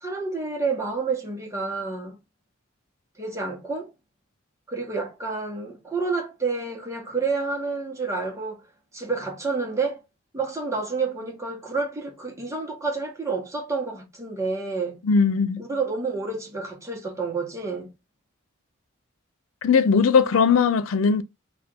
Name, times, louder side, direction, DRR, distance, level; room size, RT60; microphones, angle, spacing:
voice 1, 0.0-2.1 3.2-3.9 4.7-8.6 8.9-10.0 10.3-15.0 15.6-17.9, right 4 dB, 15° right, 1.3 m, -29 dB
voice 2, 15.0-15.6 19.6-21.2, left 5 dB, 80° left, 0.4 m, -19 dB
3.4 x 2.5 x 4.5 m
head